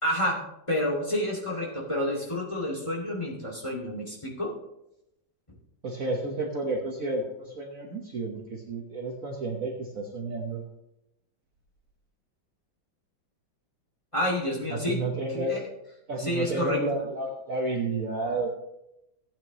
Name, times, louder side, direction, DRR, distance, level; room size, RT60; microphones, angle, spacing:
voice 1, 0.0-0.4 0.7-4.5 14.1-15.0 15.3-15.6 16.3-16.8, left 1 dB, 15° left, -2 dB, 2.3 m, -29 dB
voice 2, 5.8-10.6 14.7-15.6 16.1-18.5, right 2 dB, 50° right, 1 dB, 1.6 m, -31 dB
16.0 x 9.0 x 3.1 m, 0.86 s
omnidirectional pair, 2.0 m